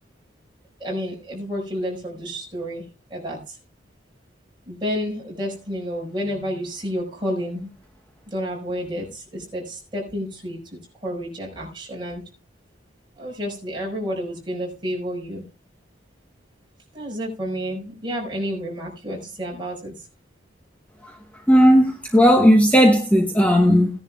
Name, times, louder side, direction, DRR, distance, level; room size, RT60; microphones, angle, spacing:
voice 1, 0.8-3.6 4.7-7.7 8.3-12.2 13.2-15.4 16.9-20.1, equal, 25° right, 5.3 m, -30 dB
voice 2, 21.5-23.9, equal, 10° left, 1.0 m, -15 dB
17.5 x 10.5 x 2.4 m
head